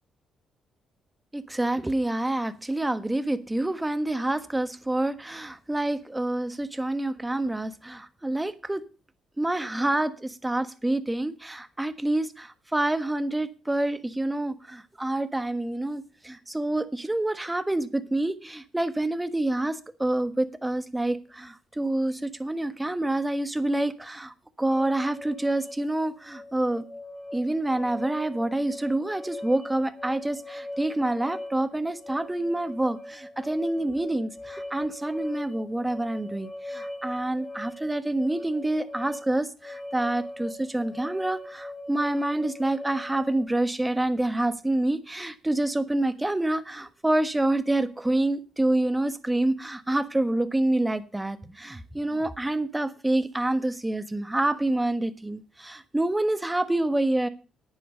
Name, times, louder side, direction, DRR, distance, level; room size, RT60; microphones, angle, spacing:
voice 1, 1.3-8.8 9.4-26.8 27.3-57.3, right 1 dB, 10° right, 12 dB, 1.3 m, -27 dB
sound 1, 24.7-43.5, left 1 dB, 25° left, 4.0 m, -40 dB
11.0 x 9.2 x 5.4 m, 0.35 s
cardioid pair, 80°, 0 cm